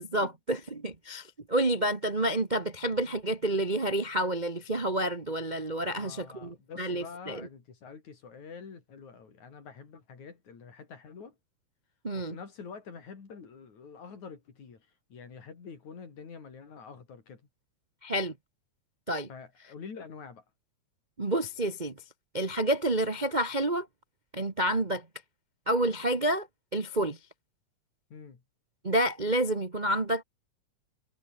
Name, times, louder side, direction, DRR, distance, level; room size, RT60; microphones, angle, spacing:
voice 1, 0.0-7.5 12.0-12.4 18.0-18.3 19.1-19.3 21.2-21.9 22.3-23.9 24.3-25.0 25.7-26.5 26.7-27.2 28.8-30.2, right 1 dB, 30° right, 0.8 m, -29 dB
voice 2, 5.9-11.4 12.1-17.4 19.3-20.4 28.1-28.4, left 5 dB, 70° left, 5.3 m, -46 dB
omnidirectional pair, 3.5 m